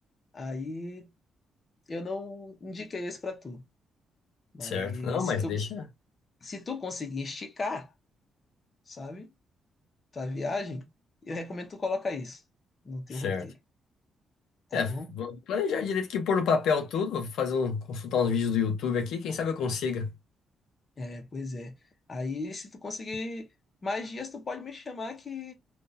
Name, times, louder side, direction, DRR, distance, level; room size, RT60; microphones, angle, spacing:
voice 1, 0.3-1.1 1.9-3.6 4.5-5.7 6.4-7.9 8.9-9.3 10.1-10.8 11.2-12.4 12.8-13.5 14.7-15.1 21.0-21.7 22.1-23.5 23.8-25.5, left 3 dB, 30° left, 0.9 m, -36 dB
voice 2, 4.6-5.8 13.1-13.5 14.7-20.1, left 6 dB, 80° left, 0.7 m, -28 dB
3.7 x 2.5 x 2.7 m
cardioid pair, 135°, 0 cm